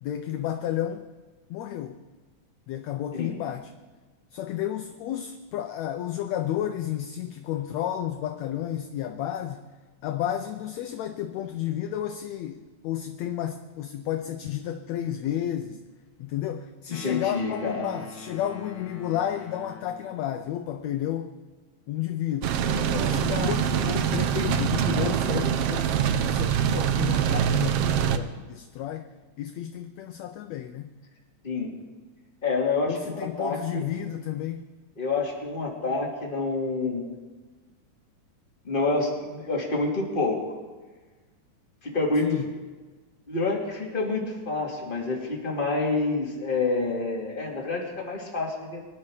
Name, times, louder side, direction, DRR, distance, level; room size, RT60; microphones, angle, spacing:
voice 1, 0.0-1.1 1.5-2.0 2.7-3.7 4.3-9.6 10.0-15.8 16.2-21.3 21.9-22.6 23.0-26.0 26.3-29.1 29.4-30.9 32.8-34.7 42.2-42.5, left 11 dB, 75° left, 7 dB, 1.6 m, -32 dB
sound 1, 16.9-20.3, left 4 dB, 40° left, 1.4 m, -44 dB
voice 2, 16.9-17.9 22.7-23.1 31.4-31.7 32.4-33.0 33.4-33.8 35.0-37.1 38.6-40.4 41.8-42.4 43.3-48.8, left 3 dB, 15° left, -3 dB, 2.6 m, -28 dB
sound 2, 22.4-28.2, right 9 dB, 80° right, 1.3 m, -24 dB
24.0 x 11.0 x 4.9 m, 1.3 s
omnidirectional pair, 3.7 m